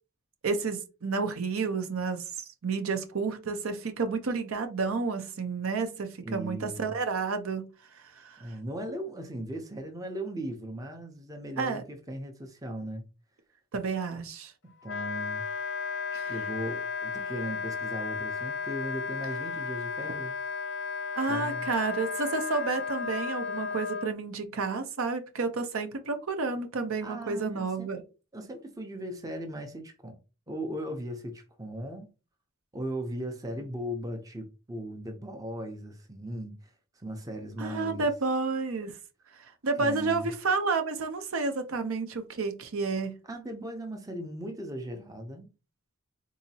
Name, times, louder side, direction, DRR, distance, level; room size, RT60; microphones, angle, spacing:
voice 1, 0.4-2.2 2.6-7.7 8.2-8.4 11.6-11.8 13.7-14.5 16.1-16.3 21.2-28.0 37.6-38.9 39.6-43.2, right 4 dB, 80° right, 0.7 m, -30 dB
voice 2, 6.2-6.9 8.4-13.1 14.6-15.5 16.1-20.4 21.3-21.7 27.0-27.9 28.3-30.2 30.5-32.1 32.7-38.1 39.4-39.5 39.8-40.3 43.2-45.5, right 1 dB, 15° right, 0.5 m, -38 dB
Wind instrument woodwind instrument, 14.8-24.1, left 5 dB, 55° left, 0.5 m, -34 dB
4.0 x 2.8 x 2.7 m
head